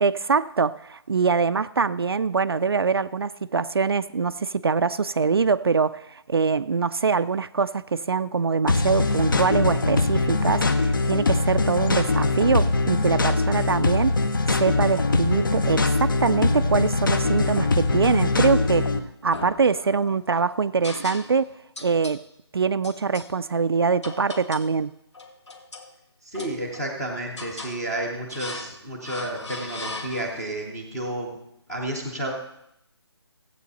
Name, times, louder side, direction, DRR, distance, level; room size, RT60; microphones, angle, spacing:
voice 1, 0.0-14.2 14.5-18.9 19.2-21.5 21.8-22.2 22.5-24.9, right 5 dB, 60° right, 0.4 m, -23 dB
sound 1, 8.7-19.0, left 3 dB, 50° left, 0.9 m, -22 dB
sound 2, 18.4-18.9 19.3-20.2 20.8-21.5 21.8-22.2 22.8-23.3 24.0-24.8 25.1-25.9 26.3-27.0 27.4-27.8 28.3-28.8 29.0-30.5, left 3 dB, 80° left, 1.8 m, -38 dB
voice 2, 26.2-31.3 31.7-32.3, right 1 dB, 5° left, 0.6 m, -31 dB
15.0 x 8.5 x 4.1 m
hypercardioid pair, 180°, 14 cm